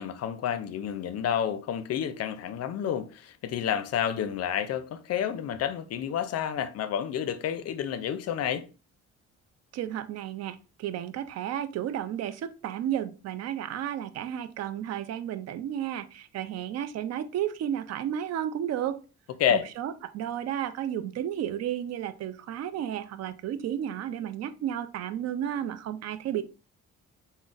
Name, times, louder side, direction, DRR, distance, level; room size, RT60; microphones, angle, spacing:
voice 1, 0.0-8.6 19.4-19.7, left 9 dB, 55° left, 0.4 m, -30 dB
voice 2, 9.7-19.0 19.5-26.4, right 10 dB, 60° right, 0.4 m, -32 dB
3.8 x 2.0 x 2.4 m
cardioid pair, 90°, 30 cm